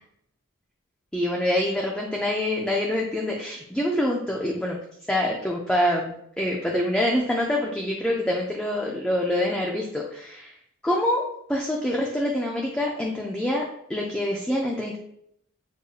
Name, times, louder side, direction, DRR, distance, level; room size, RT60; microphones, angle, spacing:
voice 1, 1.1-4.8 5.1-10.5 10.8-11.2 11.5-13.6 13.9-15.0, left 1 dB, 5° left, -2 dB, 0.3 m, -25 dB
6.4 x 2.6 x 2.3 m, 0.72 s
head